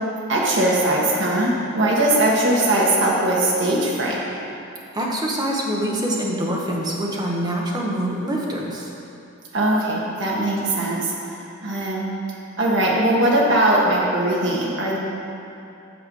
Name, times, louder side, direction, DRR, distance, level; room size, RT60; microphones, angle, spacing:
voice 1, 0.3-4.2 9.5-11.1 11.6-12.0 12.6-15.0, right 1 dB, 55° right, -4 dB, 1.4 m, -20 dB
voice 2, 4.9-8.9, right 1 dB, 20° right, -2 dB, 0.8 m, -25 dB
6.8 x 5.9 x 5.3 m, 2.8 s
head